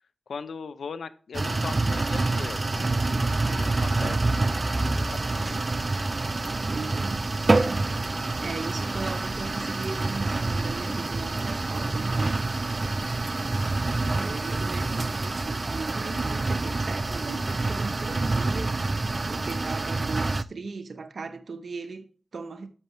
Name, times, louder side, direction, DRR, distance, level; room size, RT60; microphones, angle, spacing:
voice 1, 0.3-5.6, left 5 dB, 90° left, 0.8 m, -40 dB
sound 1, 1.3-20.4, right 2 dB, 40° right, 0.4 m, -27 dB
voice 2, 6.6-7.9 8.4-12.4 13.9-22.7, right 4 dB, 70° right, 1.0 m, -37 dB
11.0 x 6.8 x 3.2 m
wide cardioid pair, 70°, 0 cm